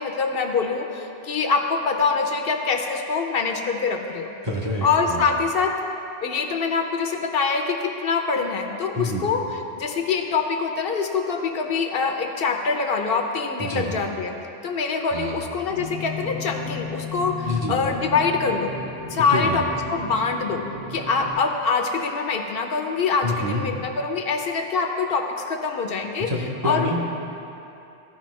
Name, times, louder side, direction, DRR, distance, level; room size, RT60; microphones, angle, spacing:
voice 1, 0.0-4.3 4.8-5.7 6.2-9.4 9.8-14.4 14.6-18.7 19.1-19.6 19.9-20.6 20.9-26.3 26.6-26.9, left 4 dB, 70° left, 4 dB, 0.8 m, -24 dB
voice 2, 4.4-5.3 8.9-9.2 13.6-14.0 15.1-15.5 17.4-17.8 19.3-19.6 23.2-23.6 26.2-27.0, left 1 dB, 30° right, -3 dB, 0.7 m, -27 dB
sound 1, 15.7-21.3, left 3 dB, 70° right, 2.4 m, -35 dB
14.0 x 4.8 x 3.1 m, 2.8 s
omnidirectional pair, 1.0 m